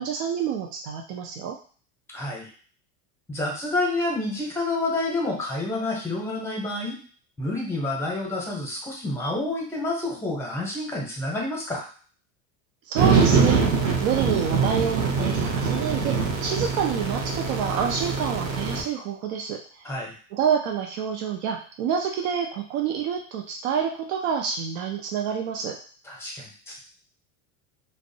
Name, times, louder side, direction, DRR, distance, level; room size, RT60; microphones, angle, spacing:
voice 1, 0.0-1.6 12.9-19.9 20.3-25.8, right 7 dB, 85° right, 2 dB, 0.5 m, -28 dB
voice 2, 2.1-2.5 3.3-7.0 7.4-11.8 19.8-20.1 26.0-26.8, left 2 dB, 5° left, -2 dB, 0.6 m, -29 dB
sound 1, 12.9-18.8, right 5 dB, 40° right, 0.6 m, -23 dB
2.5 x 2.1 x 2.7 m, 0.42 s
supercardioid pair, 130°, 40 cm